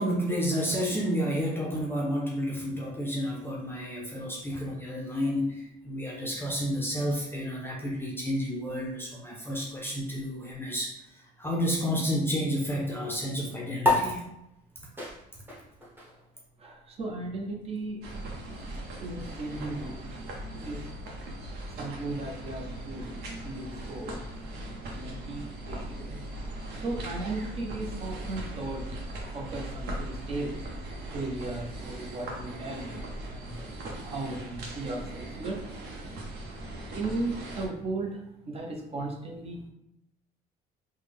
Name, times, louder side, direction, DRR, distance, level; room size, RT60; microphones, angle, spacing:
voice 1, 0.0-14.3, equal, 15° left, -2 dB, 0.6 m, -31 dB
sound 1, 13.8-20.6, left 2 dB, 10° right, 0.9 m, -34 dB
voice 2, 16.6-18.0 19.0-20.2 20.6-20.8 21.8-23.1 23.4-24.1 24.9-26.2 26.8-28.9 29.3-30.6 31.1-35.6 36.9-38.2 38.5-39.7, right 2 dB, 35° right, 1 dB, 0.7 m, -36 dB
sound 2, 18.0-37.7, right 1 dB, 70° right, 0.8 m, -39 dB
3.4 x 2.2 x 3.4 m, 0.83 s
cardioid pair, 110°, 17 cm